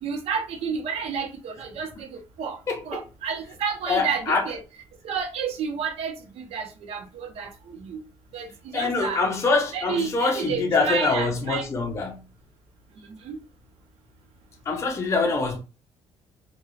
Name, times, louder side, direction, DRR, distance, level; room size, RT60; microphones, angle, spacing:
voice 1, 0.0-2.6 2.9-4.6 5.0-8.0 8.3-9.2 9.7-11.6 13.1-13.4, right 6 dB, 75° right, 0.7 m, -31 dB
voice 2, 2.7-3.0 3.9-4.5 8.7-12.2 14.7-15.6, left 3 dB, 30° left, 0.5 m, -24 dB
2.3 x 2.2 x 3.2 m
cardioid pair, 125°, 10 cm